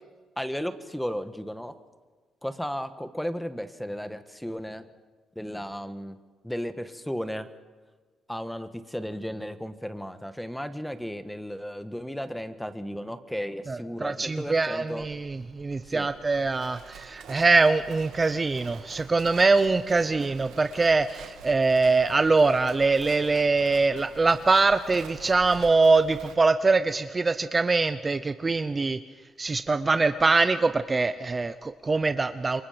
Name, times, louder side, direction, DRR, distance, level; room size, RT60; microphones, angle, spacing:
voice 1, 0.4-1.7 2.4-4.9 5.3-6.2 6.4-7.5 8.3-15.1 15.8-16.1, equal, 5° left, 10 dB, 1.5 m, -34 dB
voice 2, 13.7-29.0 29.4-32.6, right 3 dB, 25° right, 11 dB, 0.8 m, -23 dB
Livestock farm animals working animals, 15.0-26.3, right 8 dB, 80° right, 2.1 m, -47 dB
28.0 x 24.0 x 5.2 m, 1.4 s
cardioid pair, 90°, 0 cm